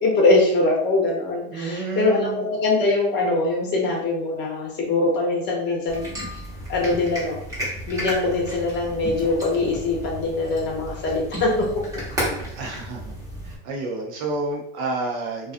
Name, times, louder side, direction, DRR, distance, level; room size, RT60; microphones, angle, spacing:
voice 1, 0.0-6.1 6.7-7.4 7.9-11.7 12.2-12.4, left 2 dB, 35° left, -2 dB, 0.8 m, -22 dB
voice 2, 1.5-2.5 12.3-13.2 13.4-15.5, right 3 dB, 45° right, 0 dB, 0.6 m, -30 dB
sound 1, 5.9-13.6, equal, 10° right, 0.8 m, -33 dB
2.4 x 2.3 x 2.5 m, 0.72 s
supercardioid pair, 140°, 32 cm